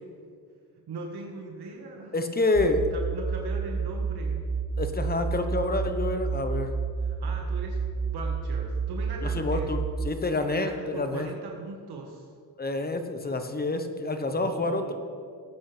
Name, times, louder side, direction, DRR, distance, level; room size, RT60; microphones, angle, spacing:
voice 1, 0.9-2.1 2.9-4.4 7.0-9.7 10.5-12.3 14.3-15.0, right 3 dB, 70° right, 0 dB, 1.6 m, -39 dB
voice 2, 2.1-2.8 4.8-6.7 9.2-11.3 12.6-15.0, left 2 dB, 25° left, 7 dB, 1.1 m, -28 dB
sound 1, 2.5-10.1, right 5 dB, 25° right, 0.8 m, -30 dB
18.0 x 8.8 x 3.4 m, 2.2 s
cardioid pair, 90°, 41 cm